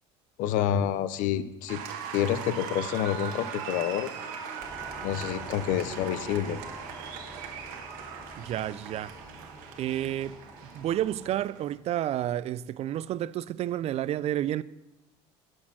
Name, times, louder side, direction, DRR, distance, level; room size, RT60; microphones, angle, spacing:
voice 1, 0.4-1.8 2.1-4.1 5.0-6.6, left 10 dB, 65° left, 0.6 m, -28 dB
Applause, 1.7-11.8, right 7 dB, 75° right, 1.3 m, -40 dB
sound 1, 4.6-11.4, left 1 dB, 5° right, 2.7 m, -47 dB
voice 2, 8.4-9.2 9.8-10.4 10.7-14.6, right 12 dB, 45° right, 0.4 m, -30 dB
11.0 x 4.5 x 6.1 m
supercardioid pair, 80°, 14 cm